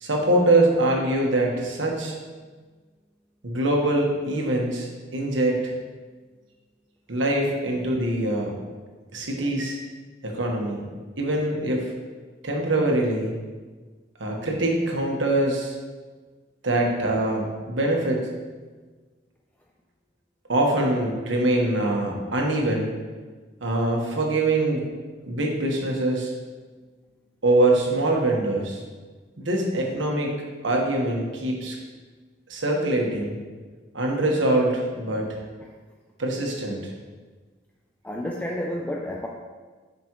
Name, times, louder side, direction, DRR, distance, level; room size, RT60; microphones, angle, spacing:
voice 1, 0.0-2.1 3.4-5.7 7.1-8.5 9.1-9.8 10.2-10.8 11.2-11.9 12.4-13.3 14.2-15.7 16.6-18.3 20.5-23.0 23.6-24.8 25.2-26.3 27.4-28.8 29.4-30.3 30.6-31.8 32.5-33.4 33.9-35.4 36.2-36.9, right 1 dB, 70° right, 0 dB, 1.4 m, -23 dB
voice 2, 38.0-39.3, left 1 dB, 10° left, -1 dB, 0.5 m, -30 dB
9.5 x 6.1 x 3.1 m, 1.4 s
head